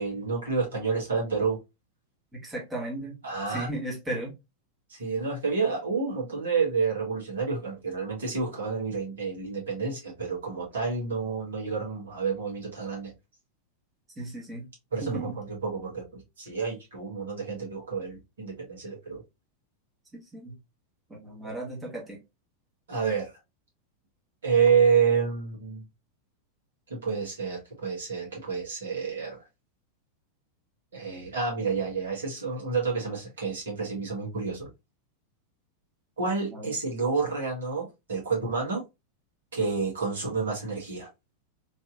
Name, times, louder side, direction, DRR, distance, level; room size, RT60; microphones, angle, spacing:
voice 1, 0.0-1.6 3.2-3.7 4.9-13.1 14.9-19.2 22.9-23.3 24.4-25.8 26.9-29.4 30.9-34.7 36.2-38.8 39.5-41.1, right 5 dB, 65° right, 1.6 m, -29 dB
voice 2, 2.3-3.2 3.5-4.3 14.2-14.7 15.0-15.4 20.1-20.5 21.1-22.2 36.5-36.7, right 1 dB, 15° right, 1.3 m, -36 dB
3.2 x 2.8 x 2.4 m
figure-of-eight pair, 90°, 0 cm